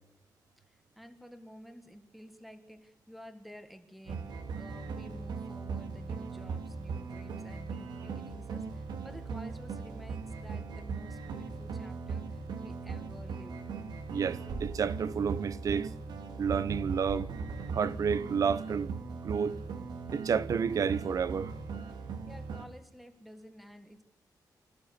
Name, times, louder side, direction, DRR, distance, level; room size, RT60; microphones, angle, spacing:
voice 1, 0.6-13.7 22.0-24.0, equal, ahead, 1.7 m, -52 dB
sound 1, 4.1-22.7, right 5 dB, 75° right, 2.7 m, -39 dB
voice 2, 14.1-15.9 16.4-17.3 17.7-19.0 19.2-19.6 20.1-21.5, right 6 dB, 50° right, 1.0 m, -30 dB
26.0 x 15.0 x 8.3 m
wide cardioid pair, 180°, 7 cm